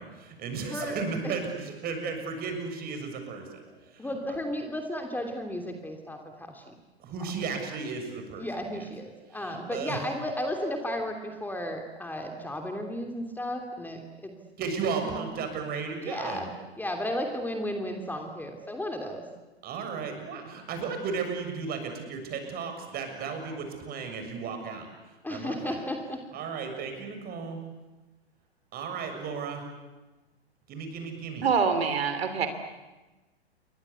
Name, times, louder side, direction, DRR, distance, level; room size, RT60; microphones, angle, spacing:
voice 1, 0.0-4.1 7.0-8.8 9.3-10.0 14.6-16.5 19.6-25.8 26.3-27.6 28.7-29.6 30.7-31.5, right 5 dB, 30° right, 5 dB, 6.9 m, -35 dB
voice 2, 3.7-6.7 8.4-14.3 15.0-15.4 16.0-16.5 16.8-19.2 25.2-26.2, left 1 dB, 5° left, 4 dB, 2.9 m, -34 dB
voice 3, 31.4-32.5, right 6 dB, 70° right, 8 dB, 3.1 m, -25 dB
29.5 x 23.5 x 8.4 m, 1.1 s
figure-of-eight pair, 110°, 32 cm